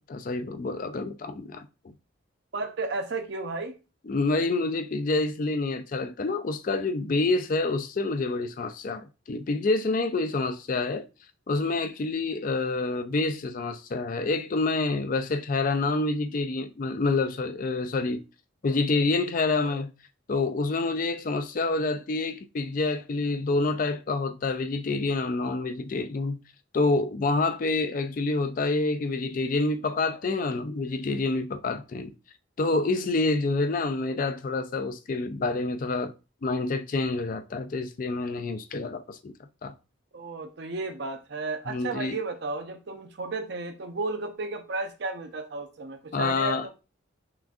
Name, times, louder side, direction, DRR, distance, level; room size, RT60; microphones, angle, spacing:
voice 1, 0.0-1.9 4.1-11.1 11.5-18.2 18.6-19.9 20.3-26.4 26.7-32.1 32.6-36.1 36.4-39.3 39.6-39.7 41.7-42.2 46.1-46.7, left 3 dB, 40° left, 0.4 m, -27 dB
voice 2, 2.5-3.7 40.1-46.7, right 3 dB, 55° right, 0.6 m, -33 dB
5.9 x 2.5 x 2.4 m
head